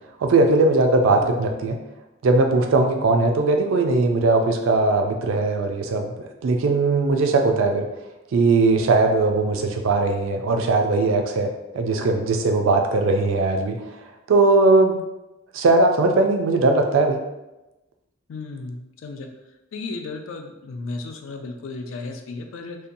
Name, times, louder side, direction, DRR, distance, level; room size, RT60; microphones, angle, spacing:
voice 1, 0.2-1.8 2.2-6.1 6.4-7.9 8.3-13.8 14.3-15.0 15.5-17.2, right 3 dB, 70° right, 4 dB, 0.4 m, -19 dB
voice 2, 1.0-1.4 18.3-19.3 19.7-22.8, left 3 dB, 70° left, 4 dB, 0.3 m, -34 dB
2.7 x 2.2 x 2.5 m, 0.99 s
head